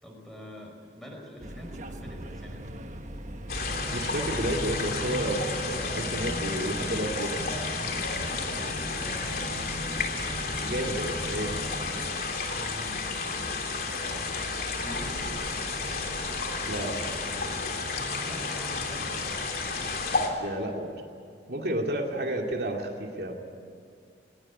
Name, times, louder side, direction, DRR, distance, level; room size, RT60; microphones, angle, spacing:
voice 1, 0.0-2.6 8.4-9.8 12.5-13.3 14.7-15.4 18.2-19.1, equal, ahead, 0 dB, 5.3 m, -44 dB
sound 1, 1.4-12.1, equal, 45° right, 1.4 m, -40 dB
sound 2, 3.5-20.3, left 3 dB, 55° left, 3.2 m, -32 dB
voice 2, 3.9-7.5 10.6-11.5 16.7-17.0 20.4-20.9 21.5-23.3, right 1 dB, 65° right, 1 dB, 2.6 m, -31 dB
20.0 x 19.0 x 9.8 m, 2.3 s
head